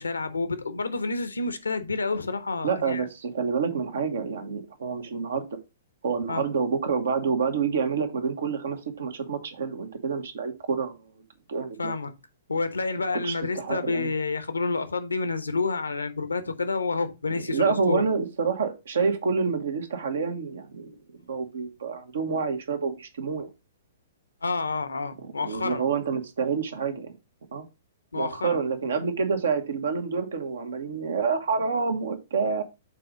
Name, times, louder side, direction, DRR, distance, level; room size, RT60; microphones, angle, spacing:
voice 1, 0.0-3.1 6.3-6.4 11.8-12.1 12.5-18.0 24.4-25.8 28.1-28.6, left 3 dB, 80° left, 1.0 m, -29 dB
voice 2, 2.6-5.4 6.0-11.1 11.5-11.9 13.2-14.1 17.5-20.9 21.3-23.5 25.4-27.1 27.5-27.6 28.1-32.6, right 5 dB, 65° right, 1.4 m, -28 dB
6.6 x 4.0 x 5.0 m
figure-of-eight pair, 115°, 0 cm